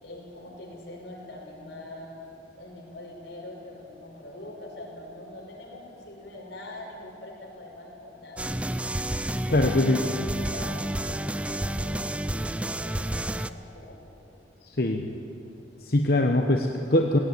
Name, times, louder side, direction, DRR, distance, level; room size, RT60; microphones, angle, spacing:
voice 1, 0.0-2.1 2.6-8.7 9.5-12.0 12.4-14.0, left 1 dB, 90° left, -2 dB, 5.9 m, -43 dB
sound 1, 8.4-13.5, right 1 dB, 5° right, 0.4 m, -30 dB
voice 2, 9.5-10.0 14.7-15.0 15.8-17.2, left 1 dB, 55° left, 2 dB, 1.0 m, -22 dB
17.5 x 16.5 x 9.5 m, 2.8 s
head